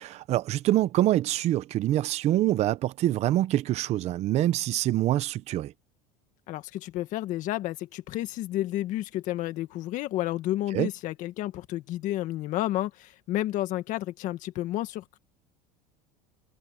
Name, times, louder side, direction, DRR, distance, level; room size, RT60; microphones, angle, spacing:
voice 1, 0.0-5.7 10.7-10.9, right 14 dB, 40° right, 0.8 m, -25 dB
voice 2, 6.5-15.2, left 14 dB, 50° left, 1.8 m, -31 dB
supercardioid pair, 135°, 17 cm